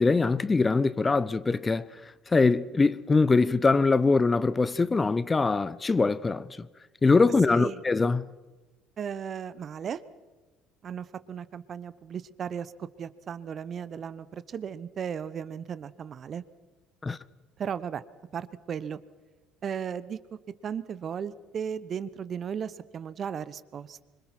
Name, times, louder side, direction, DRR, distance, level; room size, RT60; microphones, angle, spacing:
voice 1, 0.0-1.9 2.3-6.5 7.0-8.3 17.0-17.2, left 3 dB, 25° left, 0.8 m, -23 dB
voice 2, 7.5-7.8 9.0-10.0 10.8-16.4 17.6-18.0 18.3-19.0 19.6-20.2 20.6-24.0, right 7 dB, 45° right, 1.1 m, -35 dB
26.0 x 25.0 x 6.0 m
hypercardioid pair, 60°, 0 cm